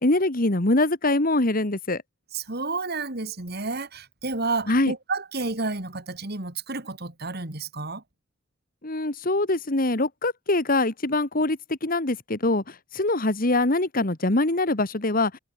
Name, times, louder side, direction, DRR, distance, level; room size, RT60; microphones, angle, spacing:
voice 1, 0.0-2.0 4.7-4.9 8.8-12.6 12.9-15.3, left 2 dB, 45° left, 2.0 m, -23 dB
voice 2, 2.3-8.0, right 3 dB, 55° right, 2.7 m, -31 dB
head